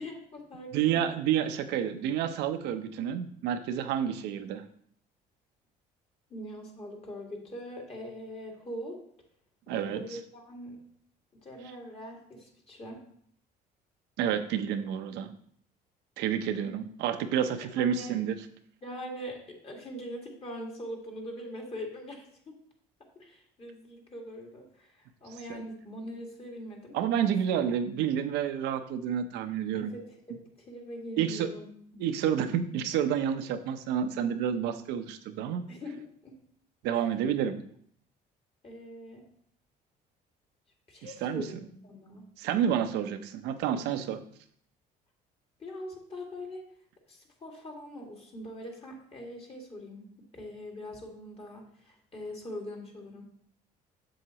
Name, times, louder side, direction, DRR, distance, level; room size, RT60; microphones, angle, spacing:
voice 1, 0.0-1.0 6.3-9.0 9.7-10.8 11.4-13.0 17.8-18.2 18.8-22.6 23.2-27.4 29.7-32.4 35.7-36.4 36.9-37.1 38.6-39.3 40.9-42.2 43.6-43.9 45.6-46.6 47.1-53.2, equal, 35° left, 0 dB, 2.0 m, -42 dB
voice 2, 0.7-4.6 9.7-10.0 14.2-15.3 16.2-18.4 25.5-25.6 26.9-29.9 31.2-31.5 32.0-35.6 36.8-37.6 41.2-41.4 42.4-44.2, right 9 dB, 90° right, 9 dB, 0.7 m, -29 dB
7.8 x 7.2 x 2.9 m, 0.63 s
cardioid pair, 110°, 17 cm